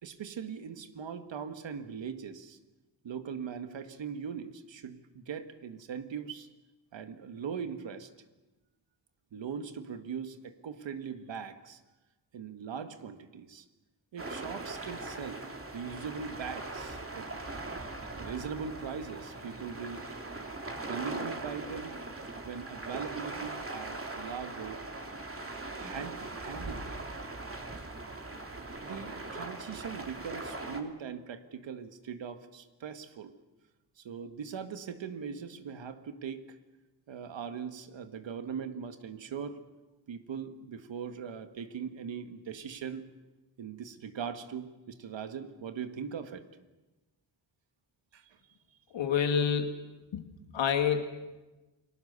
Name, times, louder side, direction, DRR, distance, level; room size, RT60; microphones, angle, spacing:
voice 1, 0.0-2.6 3.0-6.5 6.9-8.1 9.3-11.8 12.3-13.7 14.1-15.4 15.7-17.3 18.2-20.1 20.8-22.0 22.4-24.8 25.7-27.0 28.8-33.3 34.0-36.6 37.1-39.6 40.1-43.0 43.6-46.4 48.1-48.3, right 7 dB, 85° right, 9 dB, 1.8 m, -40 dB
sound 1, 14.2-30.8, right 2 dB, 30° right, 2.9 m, -40 dB
voice 2, 48.9-49.8 50.1-51.0, left 7 dB, 85° left, 6 dB, 2.3 m, -28 dB
29.0 x 20.0 x 6.9 m, 1.1 s
cardioid pair, 65°, 44 cm